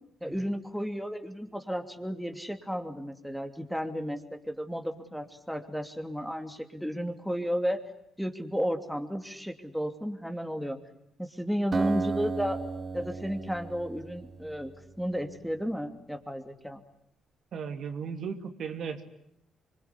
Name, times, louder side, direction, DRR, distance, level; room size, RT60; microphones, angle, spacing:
voice 1, 0.2-7.8 8.2-10.8 11.2-12.6 12.9-14.7 15.0-16.8, equal, ahead, 6 dB, 2.9 m, -33 dB
Acoustic guitar, 11.7-15.3, right 4 dB, 35° right, 2.8 m, -34 dB
voice 2, 17.5-19.1, right 6 dB, 65° right, 6 dB, 2.7 m, -36 dB
26.0 x 23.5 x 9.9 m, 0.74 s
cardioid pair, 90°, 0 cm